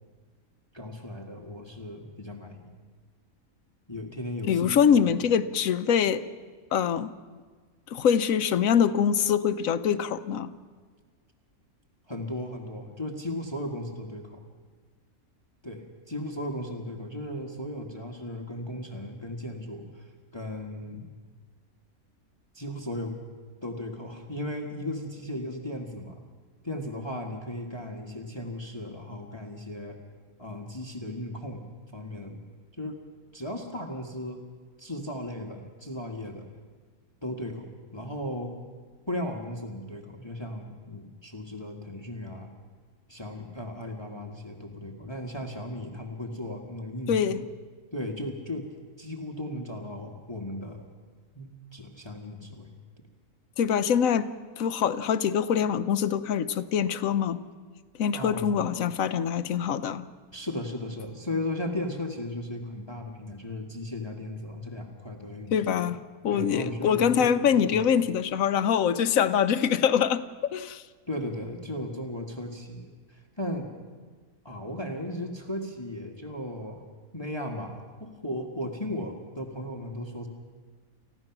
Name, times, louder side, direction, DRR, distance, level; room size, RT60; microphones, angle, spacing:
voice 1, 0.7-2.7 3.9-4.6 12.1-14.4 15.6-21.1 22.5-23.2 23.6-26.2 26.6-30.0 30.4-31.6 31.9-32.4 32.8-33.0 33.3-34.4 34.8-36.5 37.2-38.6 39.1-42.5 43.1-47.3 47.9-48.7 49.0-50.8 51.3-52.7 58.1-58.6 60.3-65.5 66.3-67.4 67.7-67.9 71.1-73.7 74.4-76.8 77.1-80.3, left 1 dB, 20° left, 1 dB, 1.5 m, -36 dB
voice 2, 4.5-6.2 6.7-7.1 7.9-10.5 47.1-47.4 53.6-54.3 54.6-57.4 58.0-60.0 65.5-66.0 66.2-70.8, left 8 dB, 70° left, 12 dB, 1.1 m, -24 dB
30.0 x 15.0 x 6.0 m, 1.5 s
omnidirectional pair, 1.6 m